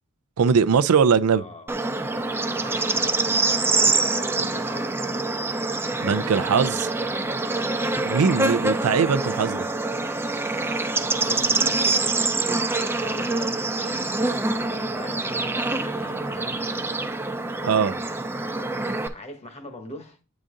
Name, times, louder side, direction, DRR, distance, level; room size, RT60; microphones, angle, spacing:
voice 1, 0.4-1.4 6.0-6.9 8.0-9.7 17.6-17.9, right 6 dB, 90° right, 0.4 m, -20 dB
voice 2, 1.3-1.7 2.6-5.0 5.9-6.5 8.2-8.6 9.0-9.5 11.2-17.1 17.7-18.0 19.1-20.2, left 1 dB, 30° left, 1.2 m, -42 dB
Bird / Insect, 1.7-19.1, right 3 dB, 10° right, 0.5 m, -25 dB
8.6 x 3.9 x 3.7 m
head